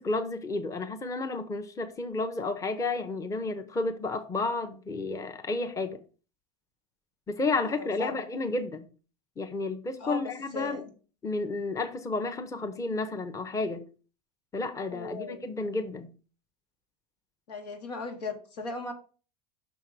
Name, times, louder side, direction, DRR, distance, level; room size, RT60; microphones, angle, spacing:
voice 1, 0.0-6.0 7.3-8.9 9.4-10.8 11.2-13.9 14.5-16.1, left 3 dB, 15° left, 0.8 m, -31 dB
voice 2, 7.6-8.1 10.0-10.9 14.9-15.4 17.5-18.9, left 3 dB, 90° left, 1.8 m, -37 dB
5.9 x 3.7 x 6.1 m
supercardioid pair, 110°, 20 cm